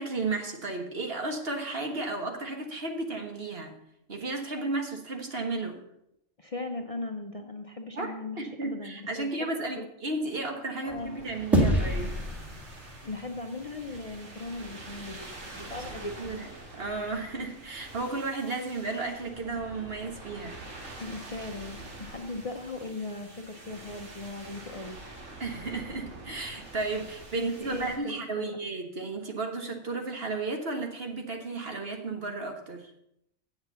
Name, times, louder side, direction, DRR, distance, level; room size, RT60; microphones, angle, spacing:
voice 1, 0.0-3.7 4.1-5.8 7.9-12.1 16.2-16.5 16.8-20.6 25.4-32.9, right 3 dB, 50° right, 3 dB, 1.7 m, -33 dB
voice 2, 6.4-9.5 9.8-9.9 10.8-11.2 13.0-16.3 21.0-25.0 27.3-28.5, left 2 dB, 35° left, 4 dB, 0.7 m, -38 dB
sound 1, 10.9-28.0, right 2 dB, 85° right, 2.1 m, -46 dB
sound 2, 11.5-14.1, equal, ahead, 1.7 m, -28 dB
7.9 x 7.9 x 6.8 m, 0.78 s
omnidirectional pair, 1.3 m